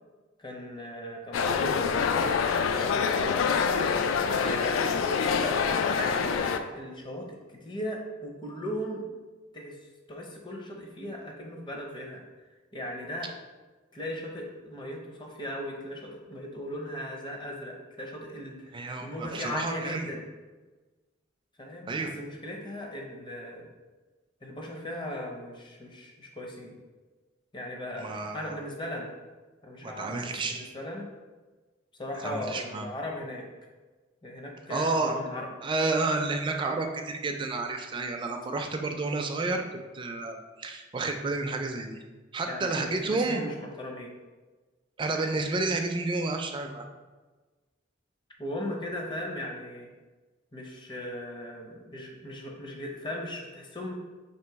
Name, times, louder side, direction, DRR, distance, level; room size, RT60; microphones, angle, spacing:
voice 1, 0.4-3.5 4.3-9.0 9.5-9.8 10.1-12.2 12.7-13.3 13.9-20.2 21.6-23.7 24.4-26.8 27.5-29.1 29.6-31.1 32.0-33.4 34.2-35.5 42.5-44.1 48.4-49.9 50.5-53.9, left 1 dB, 25° left, 0 dB, 0.6 m, -38 dB
sound 1, 1.3-6.6, left 6 dB, 85° left, 0.3 m, -26 dB
voice 2, 18.7-20.0 21.9-22.1 28.0-28.6 29.8-30.7 32.2-32.8 34.7-35.1 35.6-39.6 39.9-42.0 42.3-43.4 45.0-46.9, right 3 dB, 25° right, 4 dB, 0.3 m, -30 dB
3.0 x 3.0 x 4.5 m, 1.3 s
head